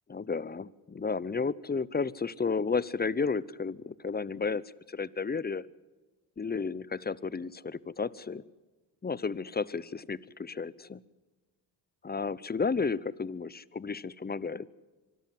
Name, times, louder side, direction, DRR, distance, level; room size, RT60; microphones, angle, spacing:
voice 1, 0.1-4.6 4.9-5.7 6.4-8.4 9.0-11.0 12.0-14.7, left 5 dB, 20° left, 21 dB, 0.7 m, -32 dB
24.5 x 13.5 x 9.1 m, 1.2 s
supercardioid pair, 55°, 44 cm